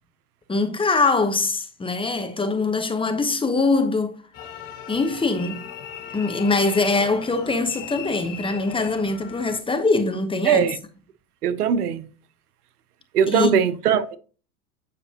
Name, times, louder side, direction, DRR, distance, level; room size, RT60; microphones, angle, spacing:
voice 1, 0.5-4.2 4.9-5.6 6.1-10.7 13.3-13.6, left 3 dB, 10° left, 1.0 m, -23 dB
sound 1, 4.3-9.6, left 8 dB, 40° left, 2.1 m, -38 dB
voice 2, 10.5-10.8 11.4-12.1 13.1-14.2, right 8 dB, 80° right, 0.9 m, -20 dB
9.6 x 5.1 x 2.9 m
hypercardioid pair, 100°, 45 cm